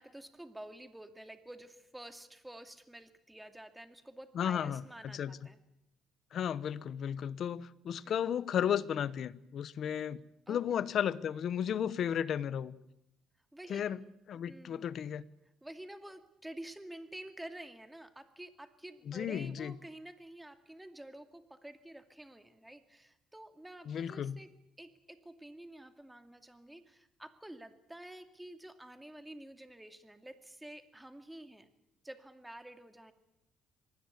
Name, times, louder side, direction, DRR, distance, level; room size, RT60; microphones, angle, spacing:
voice 1, 0.0-5.6 8.0-8.2 10.5-10.8 13.5-13.8 14.5-14.9 15.6-24.5 24.8-31.7 32.0-33.1, right 1 dB, 5° right, 2.3 m, -50 dB
voice 2, 4.3-5.4 6.3-10.2 10.5-12.7 13.7-14.0 14.3-15.2 19.1-19.7 23.9-24.4, left 9 dB, 55° left, 1.0 m, -34 dB
25.0 x 20.0 x 8.3 m
cardioid pair, 120°, 0 cm